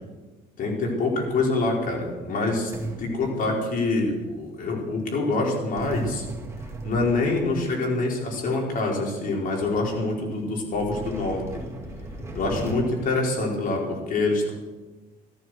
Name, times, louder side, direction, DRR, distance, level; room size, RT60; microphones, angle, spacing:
voice 1, 0.6-2.7 3.0-6.3 6.8-11.6 12.3-14.5, left 2 dB, 55° left, 0 dB, 4.8 m, -25 dB
sound 1, 1.2-1.9 2.7-4.0 5.8-7.9 8.7-8.8 9.3-9.4 9.6-9.9 10.7-12.8, right 2 dB, 15° right, 2.5 m, -36 dB
14.0 x 14.0 x 6.4 m, 1.2 s
cardioid pair, 110°, 17 cm